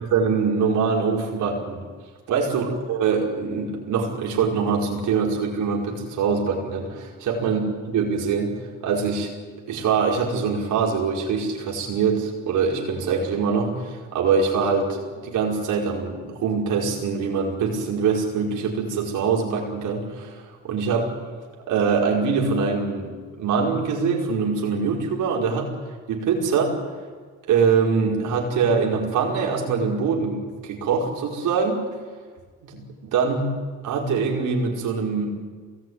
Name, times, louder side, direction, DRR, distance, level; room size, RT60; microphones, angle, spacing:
voice 1, 0.1-1.8 2.3-7.6 7.9-8.5 8.8-9.3 9.7-21.1 21.7-25.7 26.1-26.8 27.5-31.8 32.6-33.5 33.8-35.3, right 5 dB, 85° right, -1 dB, 5.1 m, -23 dB
23.0 x 18.5 x 9.6 m, 1.6 s
cardioid pair, 90°, 30 cm